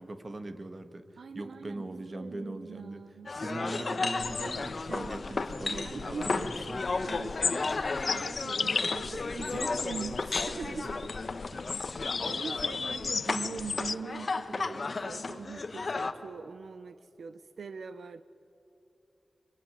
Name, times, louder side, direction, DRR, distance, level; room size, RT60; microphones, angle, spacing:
voice 1, 0.0-3.0 3.3-6.8 11.5-11.8 12.2-12.4, right 2 dB, 40° right, 9 dB, 1.9 m, -41 dB
voice 2, 1.2-3.3 4.9-5.3 5.6-6.3 7.0-11.2 11.8-18.2, right 5 dB, 85° right, 12 dB, 0.7 m, -42 dB
sound 1, 3.3-16.1, left 3 dB, 55° left, 1.4 m, -34 dB
sound 2, 4.2-13.9, left 5 dB, 75° left, 0.5 m, -36 dB
25.5 x 23.5 x 9.8 m, 3.0 s
wide cardioid pair, 75°, 0 cm